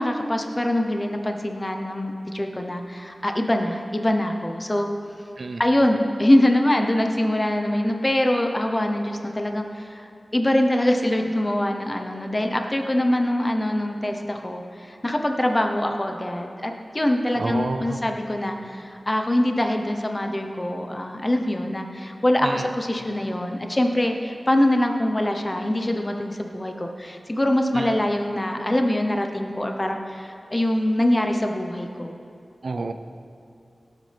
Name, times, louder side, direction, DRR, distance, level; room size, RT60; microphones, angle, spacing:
voice 1, 0.0-4.9 5.6-32.1, left 1 dB, 25° left, 4 dB, 0.9 m, -24 dB
voice 2, 17.4-18.0 22.4-22.7 27.7-27.8 32.6-32.9, right 3 dB, 75° right, 8 dB, 0.6 m, -28 dB
18.0 x 8.2 x 3.4 m, 2.5 s
wide cardioid pair, 65°, 0 cm